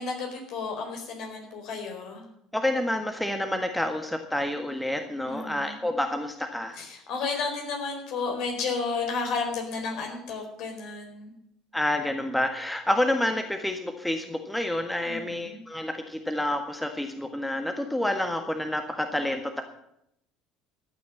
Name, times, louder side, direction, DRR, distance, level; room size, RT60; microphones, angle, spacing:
voice 1, 0.0-2.3 5.2-5.8 6.8-11.3 15.0-15.6, left 4 dB, 55° left, 3 dB, 4.4 m, -32 dB
voice 2, 2.5-6.8 11.7-19.6, left 1 dB, 5° left, 6 dB, 1.6 m, -28 dB
13.5 x 9.2 x 7.6 m, 0.75 s
figure-of-eight pair, 65°, 0 cm